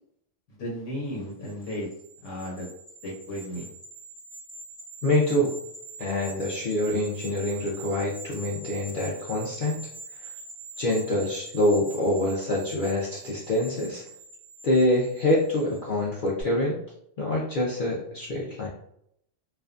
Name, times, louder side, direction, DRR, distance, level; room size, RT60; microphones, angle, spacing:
voice 1, 0.5-1.9 2.2-2.7 3.0-3.7, equal, 90° left, -4 dB, 1.1 m, -34 dB
sound 1, 1.3-15.9 16.3-16.4, right 2 dB, 10° right, 0.4 m, -44 dB
voice 2, 5.0-5.6 6.0-9.8 10.2-10.3 10.8-14.0 14.6-16.8 17.2-18.7, left 1 dB, 60° left, -5 dB, 0.6 m, -25 dB
2.5 x 2.2 x 2.4 m, 0.72 s
omnidirectional pair, 1.3 m